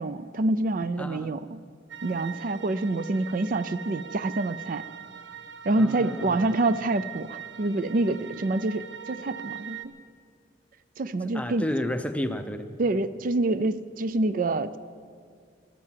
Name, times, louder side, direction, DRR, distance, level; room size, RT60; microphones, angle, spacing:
voice 1, 0.0-1.6 2.0-4.8 5.6-9.8 11.0-11.7 12.8-14.8, right 2 dB, 45° right, 13 dB, 0.4 m, -27 dB
voice 2, 1.0-1.4 5.8-6.5 11.3-12.7, left 1 dB, 5° left, 8 dB, 0.7 m, -31 dB
sound 1, 1.9-9.8, right 8 dB, 90° right, 1.1 m, -42 dB
15.5 x 12.0 x 7.4 m, 2.1 s
head